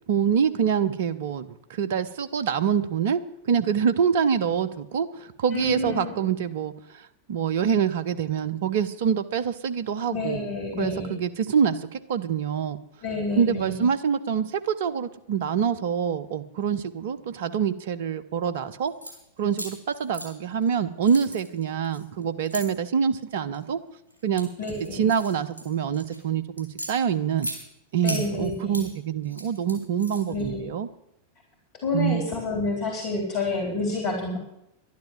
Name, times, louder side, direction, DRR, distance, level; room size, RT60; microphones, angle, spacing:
voice 1, 0.1-3.2 3.5-6.7 7.3-10.5 10.8-12.8 13.4-18.9 19.4-23.8 24.2-24.5 24.9-27.5 27.9-30.9 31.9-32.2, right 7 dB, 55° right, 12 dB, 0.9 m, -25 dB
voice 2, 5.5-6.2 10.1-11.1 13.0-13.8 24.6-25.1 28.0-28.9 30.3-30.6 31.8-34.4, left 3 dB, 40° left, 1 dB, 3.7 m, -29 dB
sound 1, 18.8-19.1 19.5-20.7 21.0-22.6 23.3-23.6 24.1-26.2 26.6-27.6 28.0-28.9 29.2-30.4, equal, 80° right, 4.2 m, -37 dB
11.5 x 10.5 x 7.4 m, 0.82 s
figure-of-eight pair, 90°, 0 cm